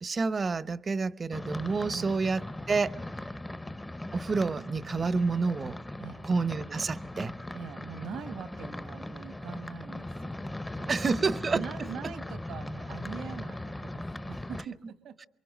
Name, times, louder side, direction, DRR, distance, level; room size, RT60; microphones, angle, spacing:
voice 1, 0.0-2.4 2.7-3.0 4.1-5.8 6.2-7.3 10.9-11.6, right 4 dB, 35° right, 0.9 m, -28 dB
sound 1, 1.3-14.7, left 1 dB, 10° left, 0.9 m, -39 dB
voice 2, 7.5-11.1 11.5-15.2, right 7 dB, 80° right, 1.8 m, -43 dB
28.0 x 23.5 x 6.5 m
cardioid pair, 90°, 0 cm